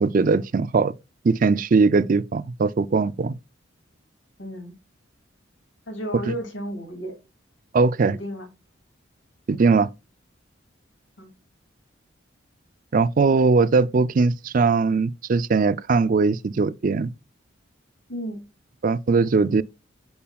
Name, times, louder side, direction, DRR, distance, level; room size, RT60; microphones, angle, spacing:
voice 1, 0.0-0.9 1.2-3.4 7.7-8.2 9.5-9.9 12.9-17.1 18.8-19.6, right 4 dB, 45° right, 0.4 m, -20 dB
voice 2, 4.4-4.7 5.9-7.2 8.0-8.5 11.2-11.3 18.1-18.4, equal, 85° left, 2.6 m, -33 dB
8.5 x 5.5 x 2.3 m
head